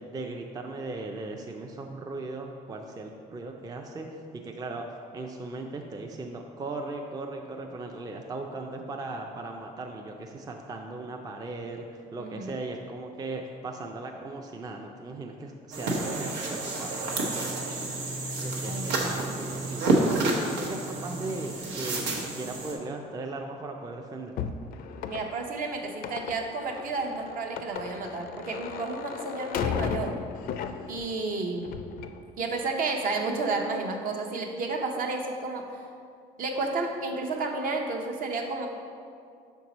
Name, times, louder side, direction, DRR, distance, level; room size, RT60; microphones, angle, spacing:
voice 1, 0.0-4.1 4.4-17.2 18.4-24.3, right 2 dB, 20° right, 2 dB, 0.4 m, -38 dB
voice 2, 12.2-12.6 17.6-17.9 18.6-19.2 25.1-30.2 30.9-31.8 32.4-35.8 36.4-38.7, right 3 dB, 55° right, 2 dB, 0.8 m, -32 dB
sound 1, 15.7-22.7, right 2 dB, 90° right, 1.0 m, -29 dB
sound 2, 24.4-31.2 31.6-32.2, left 7 dB, 60° left, 0.4 m, -35 dB
5.9 x 4.6 x 4.0 m, 2.3 s
cardioid pair, 110°, 17 cm